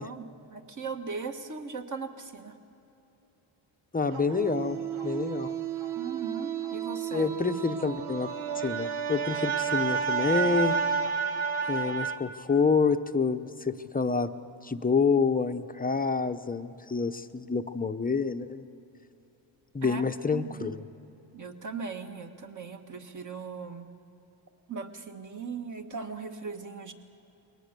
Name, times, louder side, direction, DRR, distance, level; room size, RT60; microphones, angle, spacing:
voice 1, 0.0-2.6 5.9-7.3 19.8-20.0 20.3-20.7 21.3-23.9 24.7-26.9, right 5 dB, 35° right, 6 dB, 1.7 m, -38 dB
voice 2, 3.9-4.8 5.0-5.5 7.1-8.3 8.6-10.7 11.7-14.3 14.6-18.6 19.7-20.8, left 4 dB, 20° left, 8 dB, 0.7 m, -28 dB
sound 1, 4.1-12.2, right 6 dB, 80° right, 1.3 m, -31 dB
21.5 x 19.0 x 6.8 m, 2.9 s
cardioid pair, 90°, 49 cm